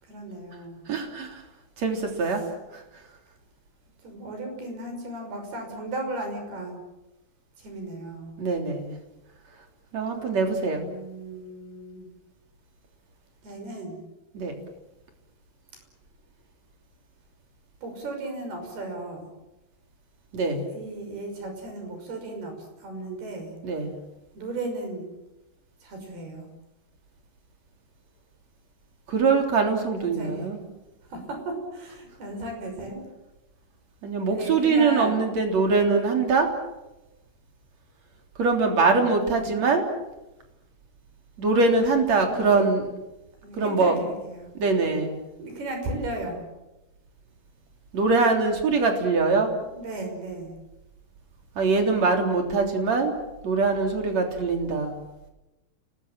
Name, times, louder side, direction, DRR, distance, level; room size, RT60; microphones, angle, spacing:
voice 1, 0.0-0.8 2.3-2.5 4.0-6.8 7.6-8.3 10.3-12.1 13.4-14.0 17.8-19.3 20.7-23.6 24.3-25.1 25.8-26.5 30.0-30.5 31.0-33.1 34.3-35.2 39.3-39.5 42.2-42.7 43.4-44.5 45.4-46.5 49.7-50.5, right 2 dB, 80° right, 4 dB, 7.9 m, -36 dB
voice 2, 0.9-1.4 1.8-2.4 2.7-2.8 8.4-9.0 9.9-10.8 14.3-14.5 20.3-20.7 23.6-23.9 29.1-30.6 34.0-36.5 38.4-39.8 41.4-42.8 43.6-44.0 44.5-45.2 47.9-49.5 51.6-53.2 53.4-54.9, right 4 dB, 45° right, 3 dB, 4.5 m, -23 dB
30.0 x 20.0 x 7.6 m, 0.99 s
omnidirectional pair, 4.5 m